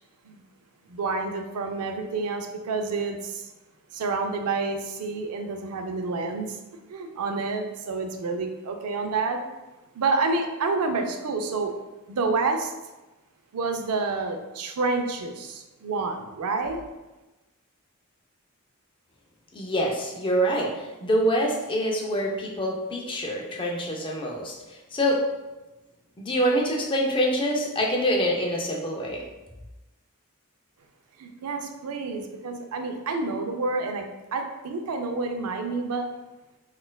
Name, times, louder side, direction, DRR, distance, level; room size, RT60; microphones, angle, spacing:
voice 1, 0.9-3.5 3.9-6.6 6.9-9.4 9.9-11.8 12.1-12.7 13.5-16.8 31.2-34.1 34.3-36.1, right 3 dB, 80° right, 5 dB, 0.4 m, -28 dB
voice 2, 19.5-25.2 26.2-29.2, equal, 20° left, -1 dB, 0.4 m, -25 dB
4.1 x 2.4 x 2.2 m, 1.1 s
head